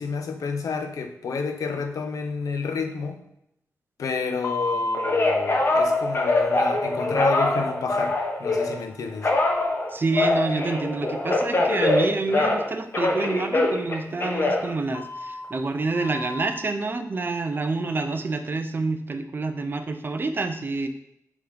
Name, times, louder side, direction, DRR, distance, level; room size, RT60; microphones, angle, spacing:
voice 1, 0.0-3.2 4.0-9.3, left 4 dB, 80° left, 6 dB, 1.0 m, -30 dB
Telephone, 4.4-8.8 9.2-12.7 12.9-15.4 15.9-16.5, left 2 dB, 40° left, 1.3 m, -24 dB
voice 2, 9.9-20.9, right 3 dB, 35° right, 8 dB, 0.7 m, -27 dB
8.4 x 3.8 x 5.2 m, 0.77 s
wide cardioid pair, 115°, 6 cm